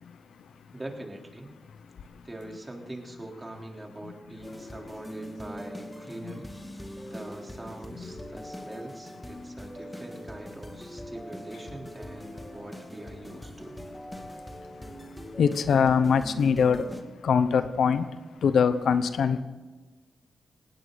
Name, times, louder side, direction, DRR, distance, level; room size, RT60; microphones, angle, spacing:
voice 1, 0.7-1.5 2.2-6.5 7.1-13.7, right 1 dB, 20° right, 3.6 m, -43 dB
sound 1, 4.4-17.0, equal, 10° left, 2.3 m, -42 dB
voice 2, 15.0-16.9 17.2-19.4, left 6 dB, 80° left, 0.8 m, -24 dB
18.5 x 17.5 x 4.0 m
cardioid pair, 55°, 0 cm